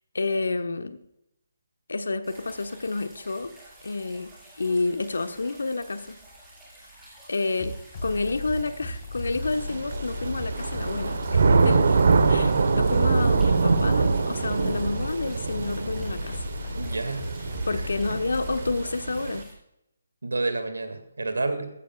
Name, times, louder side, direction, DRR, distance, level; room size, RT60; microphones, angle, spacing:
voice 1, 0.1-1.0 1.9-3.5 3.8-4.3 4.6-6.2 7.3-7.7 8.0-12.0 12.3-16.5 17.6-19.4, left 3 dB, 65° left, 9 dB, 1.1 m, -29 dB
sound 1, 2.2-19.5, right 2 dB, 5° right, 5.0 m, -49 dB
sound 2, 7.6-18.8, left 2 dB, 35° left, 4.2 m, -36 dB
Thunder / Rain, 9.5-19.4, right 4 dB, 55° right, 1.1 m, -24 dB
voice 2, 16.8-17.3 17.7-18.2 20.2-21.7, right 3 dB, 70° right, 8 dB, 2.1 m, -30 dB
14.5 x 14.5 x 2.4 m, 0.84 s
figure-of-eight pair, 145°, 0 cm